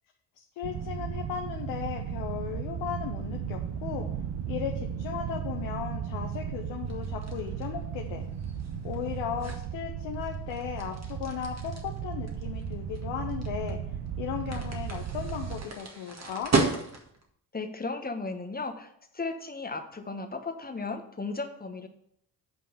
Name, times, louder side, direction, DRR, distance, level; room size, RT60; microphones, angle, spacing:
voice 1, 0.4-4.1 4.5-8.2 8.8-13.8 14.2-16.5, left 9 dB, 65° left, 3 dB, 1.0 m, -36 dB
sound 1, 0.6-15.6, right 8 dB, 55° right, 1.1 m, -35 dB
sound 2, 6.9-17.3, right 3 dB, 30° right, 1.9 m, -35 dB
voice 2, 17.5-21.9, left 3 dB, 20° left, 6 dB, 1.2 m, -35 dB
8.8 x 5.3 x 5.5 m, 0.70 s
hypercardioid pair, 50°, 49 cm